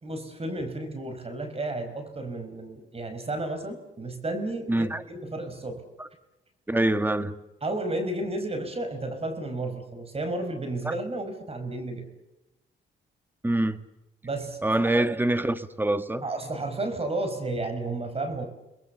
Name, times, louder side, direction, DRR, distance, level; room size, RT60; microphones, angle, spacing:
voice 1, 0.0-5.8 7.6-12.1 14.2-14.9 16.2-18.4, right 2 dB, 30° right, 5.3 m, -32 dB
voice 2, 4.7-5.0 6.0-6.1 6.7-7.4 10.8-10.9 13.4-13.8 14.6-16.2, right 1 dB, 10° right, 1.6 m, -25 dB
29.0 x 21.0 x 7.2 m
cardioid pair, 90°, 20 cm